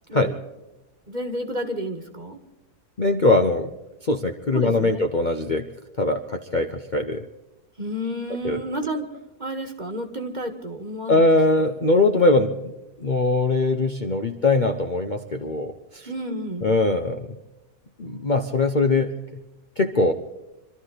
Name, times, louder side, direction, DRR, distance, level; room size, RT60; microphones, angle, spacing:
voice 1, 1.1-2.4 4.5-5.0 7.8-9.1 9.4-11.4 16.1-16.7, equal, 30° right, 6 dB, 1.7 m, -31 dB
voice 2, 3.0-3.7 4.0-5.7 6.0-7.3 8.4-8.6 11.1-12.7 13.0-16.1 16.6-17.3 18.0-19.4 19.8-20.1, left 2 dB, 35° left, 4 dB, 0.9 m, -21 dB
26.0 x 13.0 x 4.1 m, 1.0 s
omnidirectional pair, 1.6 m